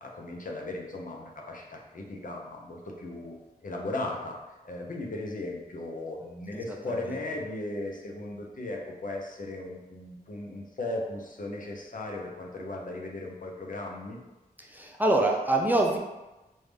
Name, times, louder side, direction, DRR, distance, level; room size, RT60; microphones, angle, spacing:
voice 1, 0.0-4.4 4.6-14.2, left 2 dB, 55° left, 0 dB, 0.7 m, -37 dB
voice 2, 6.5-7.1 14.6-16.0, right 2 dB, 10° right, -1 dB, 0.4 m, -26 dB
3.5 x 2.7 x 3.3 m, 1.0 s
wide cardioid pair, 75°, 16 cm